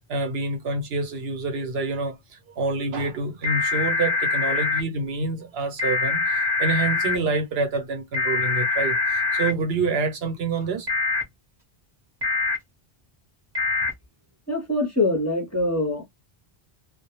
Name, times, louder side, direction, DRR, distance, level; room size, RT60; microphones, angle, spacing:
voice 1, 0.1-2.2 2.6-10.9, right 3 dB, 80° right, 1.0 m, -27 dB
Tsunami Watch, 3.4-4.8 5.8-7.2 8.1-9.5 10.9-11.2 12.2-12.6 13.5-13.9, left 4 dB, 25° right, 0.8 m, -24 dB
voice 2, 14.5-16.0, left 2 dB, 20° left, 0.7 m, -24 dB
2.2 x 2.0 x 2.9 m
omnidirectional pair, 1.0 m